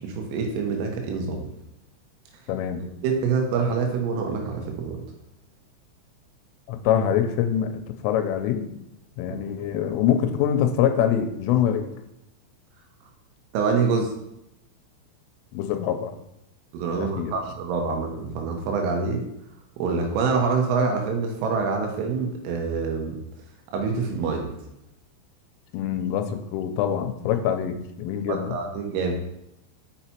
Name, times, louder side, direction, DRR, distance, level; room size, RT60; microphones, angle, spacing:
voice 1, 0.0-1.5 2.8-5.0 9.3-9.4 13.5-14.1 16.7-19.2 19.8-23.2 23.7-24.5 28.3-29.1, right 5 dB, 85° right, 3 dB, 3.7 m, -26 dB
voice 2, 2.5-2.8 6.7-8.7 9.2-11.9 15.5-16.1 16.9-17.3 25.7-28.6, left 9 dB, 85° left, 7 dB, 3.2 m, -24 dB
6.8 x 5.8 x 4.4 m, 0.83 s
omnidirectional pair, 5.8 m